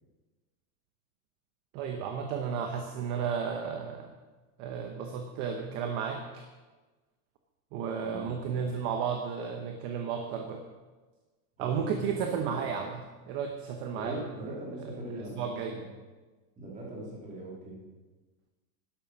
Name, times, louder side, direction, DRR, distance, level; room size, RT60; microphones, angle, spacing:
voice 1, 1.7-4.1 4.6-6.4 7.7-10.7 11.6-14.2 14.4-14.5 14.8-14.9 15.4-15.8, right 7 dB, 30° right, 5 dB, 0.9 m, -33 dB
voice 2, 8.0-9.0 11.6-12.6 13.9-15.8 16.6-17.8, right 1 dB, 15° right, -3 dB, 3.3 m, -41 dB
12.0 x 11.0 x 6.0 m, 1.3 s
supercardioid pair, 175°, 47 cm